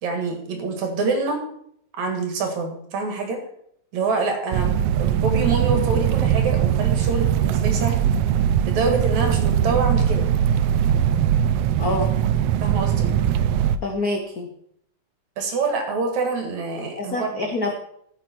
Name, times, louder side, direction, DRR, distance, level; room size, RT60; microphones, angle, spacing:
voice 1, 0.0-1.4 1.9-3.4 3.9-8.1 8.7-10.2 12.6-13.1 15.4-17.5, right 3 dB, 70° right, 4 dB, 3.2 m, -26 dB
sound 1, 4.5-13.8, right 10 dB, 85° right, 1.4 m, -20 dB
voice 2, 11.8-12.1 13.8-14.5 17.0-17.8, left 2 dB, 75° left, 2 dB, 0.8 m, -26 dB
14.5 x 7.9 x 4.6 m, 0.69 s
omnidirectional pair, 3.5 m